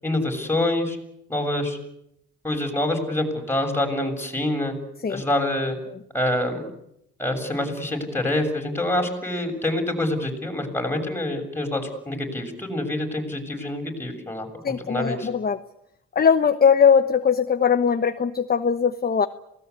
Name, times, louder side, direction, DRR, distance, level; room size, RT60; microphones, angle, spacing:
voice 1, 0.0-1.0 1.3-1.8 2.4-4.7 5.1-5.8 6.1-6.7 7.2-15.3, left 1 dB, 5° left, 3 dB, 7.3 m, -26 dB
voice 2, 14.6-15.6 16.1-19.3, left 6 dB, 30° left, 9 dB, 1.1 m, -20 dB
27.0 x 18.5 x 8.5 m, 0.80 s
cardioid pair, 90°, 30 cm